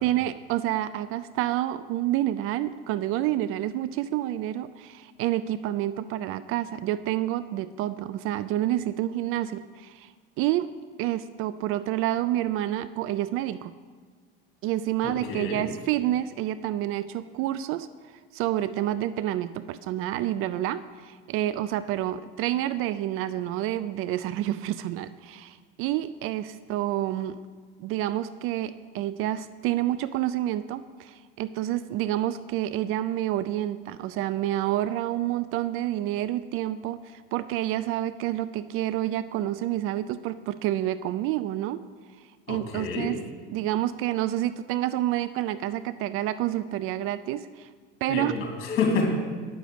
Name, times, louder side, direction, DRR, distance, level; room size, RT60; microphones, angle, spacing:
voice 1, 0.0-10.1 10.4-13.7 14.6-17.9 18.3-27.4 27.8-41.9 42.5-43.1 43.5-47.7 48.0-48.3, right 13 dB, 50° right, 14 dB, 0.4 m, -28 dB
voice 2, 15.0-15.6 42.5-43.1 48.1-49.1, left 4 dB, 45° left, 0 dB, 2.8 m, -28 dB
9.1 x 6.4 x 6.9 m, 1.5 s
hypercardioid pair, 75°, 29 cm